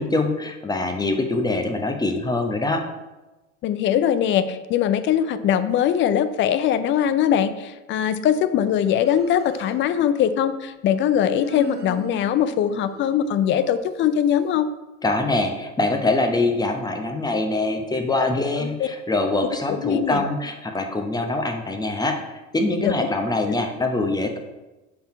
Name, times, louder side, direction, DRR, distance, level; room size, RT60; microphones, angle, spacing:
voice 1, 0.0-2.8 15.0-24.4, left 2 dB, 10° left, 4 dB, 0.8 m, -24 dB
voice 2, 3.6-14.7 18.6-18.9 19.4-20.2 22.8-22.9 23.4-23.6, left 9 dB, 30° left, 13 dB, 0.4 m, -21 dB
Human voice, 8.9-9.9 11.0-13.7, right 2 dB, 25° right, 1.0 m, -38 dB
6.9 x 4.0 x 4.3 m, 1.1 s
hypercardioid pair, 80°, 39 cm